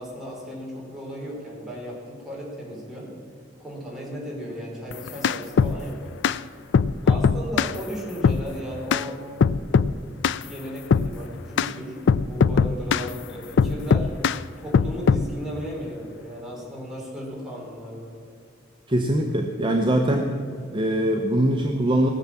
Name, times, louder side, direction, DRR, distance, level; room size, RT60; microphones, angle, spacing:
voice 1, 0.0-3.1 3.6-6.1 7.0-9.5 10.4-14.2 14.6-18.1, equal, ahead, -5 dB, 4.3 m, -35 dB
sound 1, 4.9-5.8 6.2-6.4 6.7-7.8 8.2-8.4 8.9-9.1 9.4-9.9 10.2-10.4 10.9-11.1 11.6-11.7 12.1-13.1 13.6-14.4 14.7-15.3, left 5 dB, 65° left, 0.4 m, -20 dB
voice 2, 18.9-20.3 20.7-22.1, right 1 dB, 25° right, 2 dB, 0.9 m, -22 dB
18.5 x 7.2 x 7.4 m, 2.3 s
head